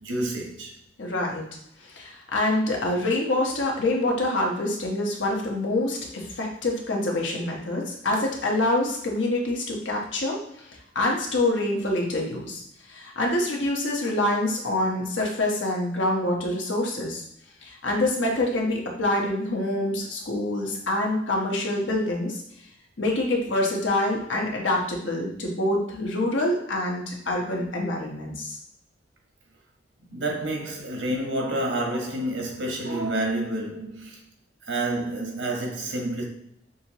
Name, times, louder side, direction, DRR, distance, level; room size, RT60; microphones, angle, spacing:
voice 1, 0.0-0.7 30.1-34.2 34.6-36.2, right 1 dB, 85° right, 1.2 m, -29 dB
voice 2, 1.0-1.5 1.8-17.2 17.6-22.4 23.0-28.6, left 1 dB, 90° left, 1.1 m, -26 dB
6.2 x 2.8 x 3.0 m
head